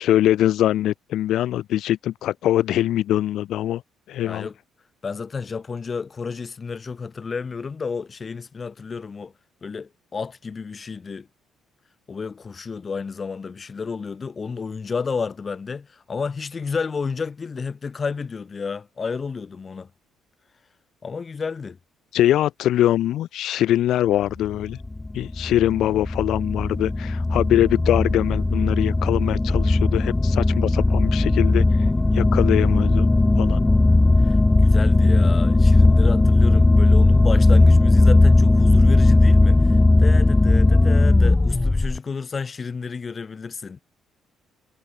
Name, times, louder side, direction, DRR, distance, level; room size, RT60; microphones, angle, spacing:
voice 1, 0.0-3.8 4.1-4.5 22.1-24.8 25.1-33.1 33.4-33.6, left 12 dB, 70° left, 0.9 m, -22 dB
voice 2, 4.2-4.5 5.0-9.3 9.6-11.3 12.1-19.9 21.0-21.8 34.2-43.8, left 5 dB, 30° left, 4.8 m, -31 dB
sound 1, 24.5-42.0, left 2 dB, 15° left, 1.2 m, -17 dB
cardioid pair, 115°, 0 cm